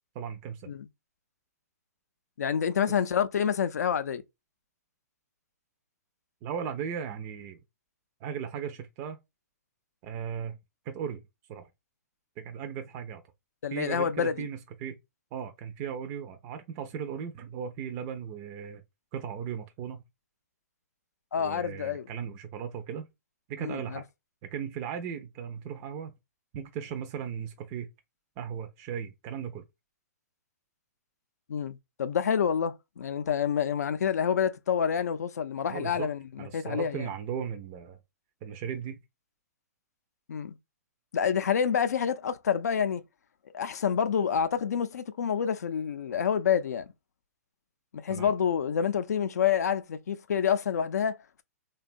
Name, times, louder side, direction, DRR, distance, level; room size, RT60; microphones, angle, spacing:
voice 1, 0.2-0.7 6.4-7.6 8.2-9.2 10.0-10.6 10.9-11.2 11.5-11.7 12.4-13.2 13.7-15.0 15.3-18.8 19.1-20.0 21.4-23.1 23.5-24.0 24.5-26.1 26.5-27.9 28.4-29.6 35.7-36.1 36.4-38.0 38.4-39.0 48.1-48.3, right 8 dB, 30° right, 0.4 m, -37 dB
voice 2, 2.4-4.2 13.6-14.5 21.3-22.1 23.6-24.0 31.5-37.1 40.3-40.6 41.1-43.0 43.5-46.9 47.9-51.4, left 7 dB, 80° left, 0.4 m, -28 dB
2.7 x 2.2 x 2.4 m
hypercardioid pair, 135°, 9 cm